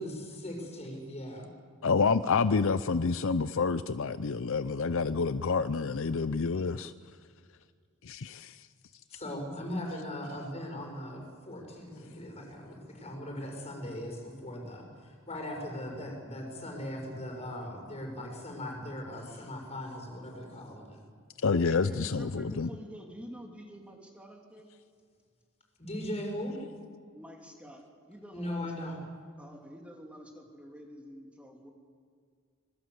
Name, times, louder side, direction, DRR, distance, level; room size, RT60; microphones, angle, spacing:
voice 1, 0.0-1.5 9.1-21.0 25.8-26.6 28.3-29.0, left 1 dB, 30° left, 1 dB, 6.3 m, -39 dB
voice 2, 1.8-6.9 8.0-8.6 21.4-22.7, left 4 dB, 65° left, 13 dB, 0.6 m, -28 dB
voice 3, 21.7-24.7 27.1-28.9 29.4-31.7, equal, 5° right, 1 dB, 3.1 m, -47 dB
25.5 x 21.5 x 8.0 m, 2.1 s
head